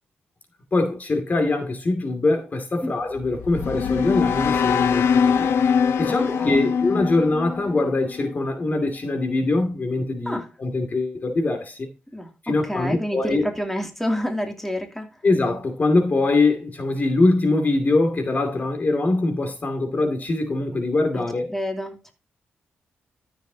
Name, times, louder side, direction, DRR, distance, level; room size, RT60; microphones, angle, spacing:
voice 1, 0.7-5.5 6.0-11.9 12.4-13.4 15.2-21.5, left 2 dB, 45° left, 2.5 m, -23 dB
sound 1, 3.1-8.4, left 6 dB, 90° left, 1.0 m, -23 dB
voice 2, 6.3-6.7 10.3-10.5 12.1-12.3 12.7-15.1 21.1-21.2 21.5-22.1, equal, 5° left, 2.6 m, -28 dB
13.5 x 7.2 x 2.8 m
cardioid pair, 75°, 4 cm